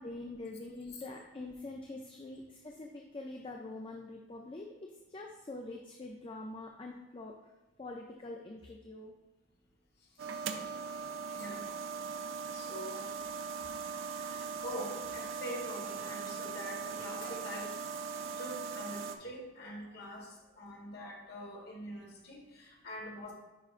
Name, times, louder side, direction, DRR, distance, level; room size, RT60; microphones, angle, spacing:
voice 1, 0.0-7.4 7.8-9.2, left 2 dB, 25° left, 1 dB, 0.4 m, -45 dB
sound 1, 10.2-19.2, right 6 dB, 65° right, 0.5 m, -40 dB
voice 2, 11.3-11.7 12.5-13.1 14.2-17.8 18.2-23.3, equal, 50° left, -1 dB, 1.3 m, -45 dB
9.9 x 4.6 x 2.5 m, 1.1 s
head